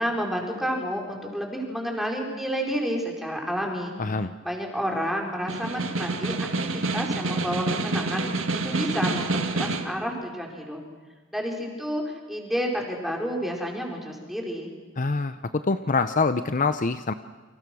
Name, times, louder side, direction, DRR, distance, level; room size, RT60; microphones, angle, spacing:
voice 1, 0.0-4.0 4.4-8.3 8.6-10.8 11.3-14.7, equal, ahead, 0 dB, 4.8 m, -30 dB
voice 2, 4.0-4.3 15.0-17.1, left 4 dB, 40° left, 11 dB, 0.7 m, -25 dB
Snare drum, 5.3-10.0, right 3 dB, 80° right, 2.0 m, -28 dB
29.0 x 26.0 x 6.3 m, 1.4 s
head